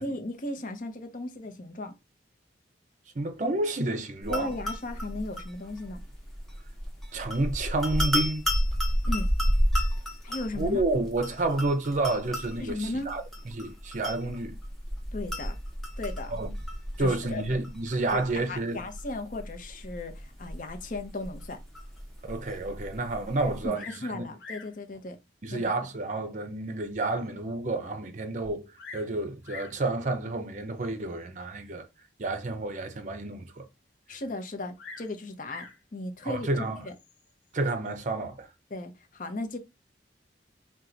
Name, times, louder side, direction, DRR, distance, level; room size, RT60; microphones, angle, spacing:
voice 1, 0.0-1.9 4.3-6.0 9.0-9.3 10.2-10.8 12.6-13.1 15.1-15.6 16.0-16.4 17.0-17.4 18.1-21.6 23.6-25.2 25.5-25.7 34.1-36.5 36.8-36.9 38.7-39.6, left 2 dB, 45° left, 0.7 m, -36 dB
voice 2, 3.2-4.5 7.1-8.5 10.5-13.2 13.5-14.6 16.3-16.5 17.0-18.8 22.3-24.2 25.4-31.9 32.2-33.7 36.2-36.9 37.5-38.5, right 2 dB, 45° right, 0.6 m, -30 dB
sound 1, 4.2-23.7, equal, ahead, 1.0 m, -32 dB
Bird vocalization bird call bird song, 23.7-24.1 24.4-24.8 25.6-25.7 26.3-26.4 26.9-27.0 27.2-27.3 28.4-29.1 29.4-29.8 30.8-31.1 34.8-35.8 36.9-37.3, left 4 dB, 90° left, 1.0 m, -45 dB
4.4 x 2.3 x 3.8 m
head